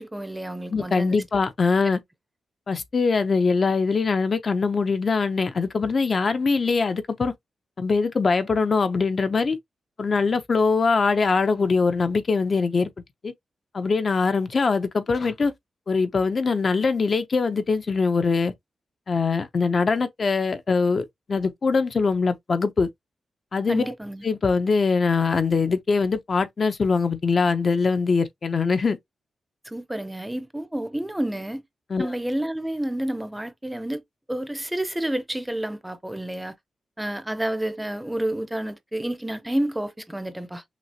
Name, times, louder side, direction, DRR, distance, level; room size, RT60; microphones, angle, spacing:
voice 1, 0.0-1.2 23.7-24.2 29.6-31.6 32.0-34.0 34.3-36.5 37.0-40.6, right 1 dB, 10° right, 0.6 m, -29 dB
voice 2, 0.7-2.0 2.7-7.3 7.8-9.6 10.0-12.9 13.2-13.3 13.7-15.5 15.9-18.5 19.1-22.9 23.5-23.9 24.2-29.0 31.9-32.1, left 4 dB, 45° left, 0.6 m, -22 dB
6.0 x 2.4 x 2.8 m
wide cardioid pair, 105°, 0 cm